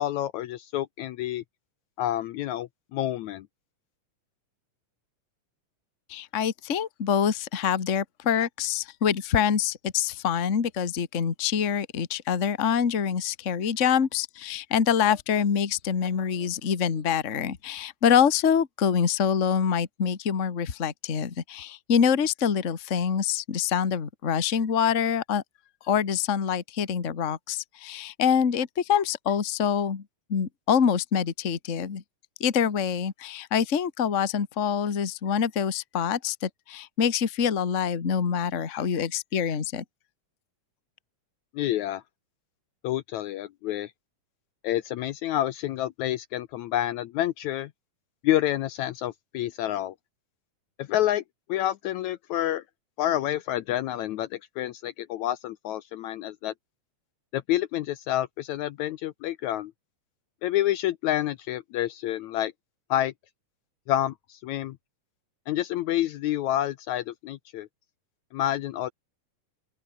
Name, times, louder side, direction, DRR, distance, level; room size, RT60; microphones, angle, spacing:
voice 1, 0.0-1.4 2.0-3.5 41.5-42.0 42.8-43.9 44.6-47.7 48.2-49.9 50.8-51.2 51.5-52.6 53.0-56.5 57.3-59.7 60.4-62.5 62.9-63.1 63.9-64.8 65.5-67.7 68.3-68.9, left 13 dB, 75° left, 1.9 m, -28 dB
voice 2, 6.1-25.4 25.8-30.0 30.3-32.0 32.4-39.8, left 7 dB, 35° left, 1.2 m, -25 dB
open air
omnidirectional pair, 3.8 m